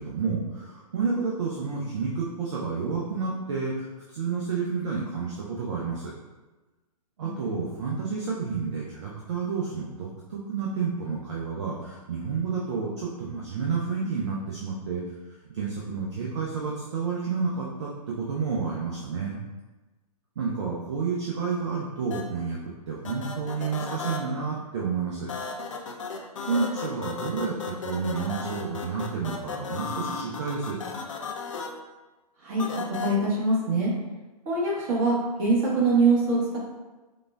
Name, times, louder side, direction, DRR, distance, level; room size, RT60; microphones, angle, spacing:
voice 1, 0.0-6.1 7.2-15.0 15.5-19.4 20.4-25.3 26.5-30.8, right 5 dB, 45° right, -3 dB, 0.5 m, -30 dB
voice 2, 7.2-7.6 32.4-33.9 34.4-36.6, right 3 dB, 30° right, -6 dB, 1.1 m, -24 dB
sound 1, 22.1-22.2 23.0-24.2 25.3-31.7 32.6-33.1, left 5 dB, 55° left, 0.5 m, -34 dB
4.8 x 2.2 x 2.2 m, 1.2 s
figure-of-eight pair, 120°, 20 cm